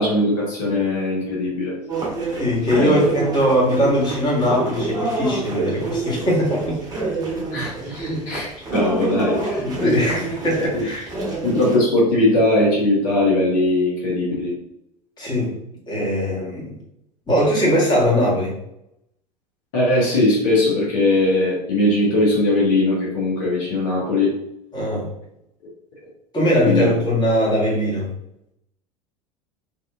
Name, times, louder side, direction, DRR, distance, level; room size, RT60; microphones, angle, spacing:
voice 1, 0.0-1.7 2.8-2.9 7.5-9.6 10.7-10.8 11.4-14.5 19.7-24.3 26.6-26.9, left 2 dB, 55° left, -5 dB, 0.9 m, -20 dB
sound 1, 1.9-11.8, right 3 dB, 20° right, 1.1 m, -27 dB
voice 2, 2.4-6.8 8.1-8.2 9.6-11.1 15.2-15.5 15.9-16.8 17.3-18.6 24.7-25.1 26.3-28.1, equal, 20° left, -6 dB, 1.2 m, -20 dB
2.9 x 2.4 x 2.3 m, 0.80 s
figure-of-eight pair, 75°, 21 cm